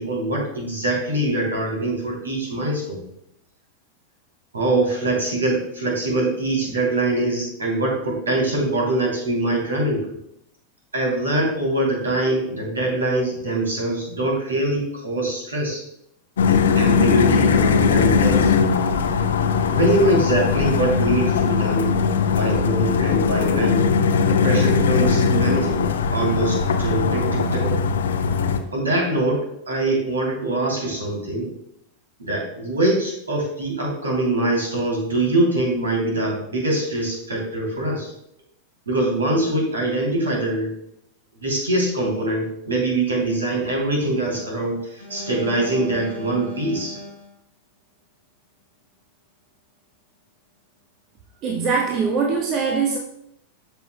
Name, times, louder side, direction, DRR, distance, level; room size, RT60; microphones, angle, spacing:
voice 1, 0.0-3.0 4.5-10.1 10.9-15.8 16.4-18.5 19.7-21.9 22.3-23.9 24.2-27.8 28.7-29.4 29.7-31.5 32.2-38.1 38.9-40.7 41.4-47.1, right 2 dB, 75° right, 3.1 m, -23 dB
sound 1, 16.4-28.6, left 5 dB, 65° left, 0.7 m, -19 dB
voice 2, 51.4-53.0, right 5 dB, 35° right, 1.0 m, -22 dB
13.5 x 5.9 x 2.2 m
figure-of-eight pair, 90°, 0 cm